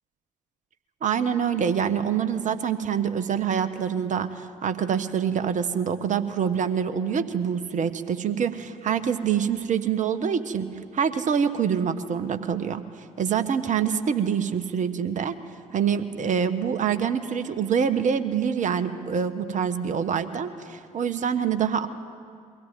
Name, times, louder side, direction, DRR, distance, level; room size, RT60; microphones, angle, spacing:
voice 1, 1.0-10.7 10.9-12.8 13.2-15.3 15.7-21.9, right 7 dB, 45° right, 10 dB, 1.4 m, -25 dB
22.5 x 17.0 x 9.3 m, 2.3 s
hypercardioid pair, 50°, 17 cm